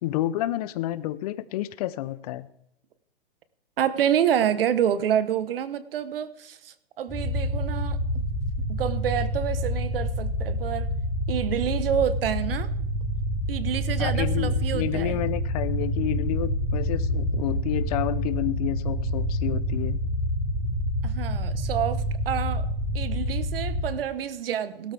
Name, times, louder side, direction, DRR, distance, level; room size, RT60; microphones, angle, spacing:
voice 1, 0.0-2.5 14.0-20.0, left 13 dB, 40° left, 0.7 m, -30 dB
voice 2, 3.8-8.2 8.7-10.9 11.3-12.7 13.5-15.2 21.0-22.7 22.9-24.9, right 9 dB, 65° right, 1.2 m, -28 dB
sound 1, 7.1-23.8, equal, 5° right, 4.0 m, -27 dB
18.0 x 12.5 x 3.5 m
hypercardioid pair, 150°, 30 cm